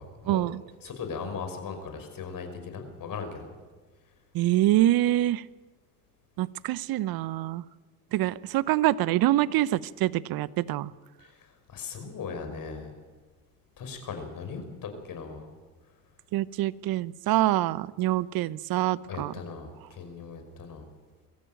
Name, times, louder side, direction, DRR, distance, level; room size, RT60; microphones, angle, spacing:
voice 1, 0.3-0.6 4.3-5.4 6.4-7.6 8.1-10.9 16.3-19.3, right 15 dB, 50° right, 19 dB, 0.9 m, -25 dB
voice 2, 0.8-3.5 11.2-12.9 13.8-15.5 19.1-20.8, left 5 dB, 45° left, 6 dB, 5.6 m, -38 dB
22.5 x 15.0 x 9.0 m, 1.3 s
hypercardioid pair, 70°, 46 cm